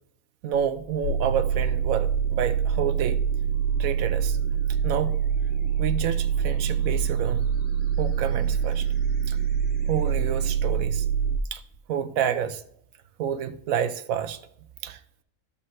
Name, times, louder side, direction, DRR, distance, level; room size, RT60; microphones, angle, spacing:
voice 1, 0.4-3.2 3.8-4.4 4.8-5.2 5.8-7.4 8.0-8.9 9.3-9.4 9.9-11.0 11.5-11.6 11.9-12.6 13.2-14.4 14.8-15.0, right 8 dB, 85° right, 1.1 m, -29 dB
sound 1, 0.5-10.5, right 4 dB, 5° right, 3.1 m, -48 dB
sound 2, 1.0-11.4, right 7 dB, 60° left, 0.8 m, -25 dB
13.0 x 5.4 x 3.1 m
omnidirectional pair, 1.4 m